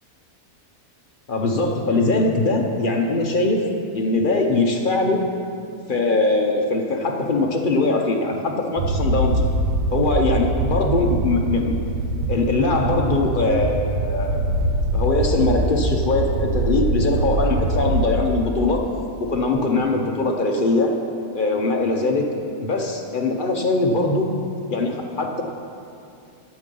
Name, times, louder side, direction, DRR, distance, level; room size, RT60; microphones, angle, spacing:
voice 1, 1.3-3.6 3.9-5.2 5.9-9.4 9.9-11.7 12.3-14.4 14.9-18.8 19.2-20.9 21.3-22.3 22.6-24.3 24.7-25.4, left 3 dB, 45° left, 1 dB, 0.7 m, -21 dB
sound 1, 8.8-18.1, right 2 dB, 90° right, 1.4 m, -23 dB
12.0 x 7.1 x 5.4 m, 2.5 s
omnidirectional pair, 1.7 m